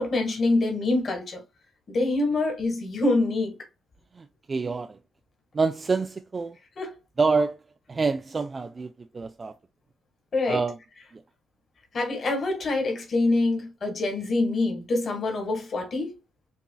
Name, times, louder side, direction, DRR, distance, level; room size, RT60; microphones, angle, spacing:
voice 1, 0.0-1.4 1.9-3.6 6.8-6.9 10.3-10.6 11.9-16.1, left 2 dB, 45° left, 1.9 m, -25 dB
voice 2, 4.2-5.0 5.5-6.6 7.2-7.6 7.9-9.5 10.5-10.8, right 4 dB, 30° right, 0.4 m, -27 dB
6.8 x 2.4 x 2.3 m
cardioid pair, 90°, 0 cm